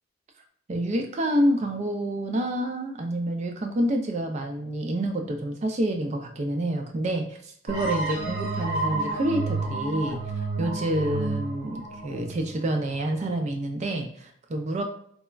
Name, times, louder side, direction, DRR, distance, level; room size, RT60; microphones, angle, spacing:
voice 1, 0.7-10.2 10.6-14.8, right 1 dB, 35° right, 4 dB, 0.3 m, -28 dB
sound 1, 7.7-13.1, right 3 dB, 90° right, 0.8 m, -31 dB
3.2 x 2.0 x 2.3 m, 0.64 s
head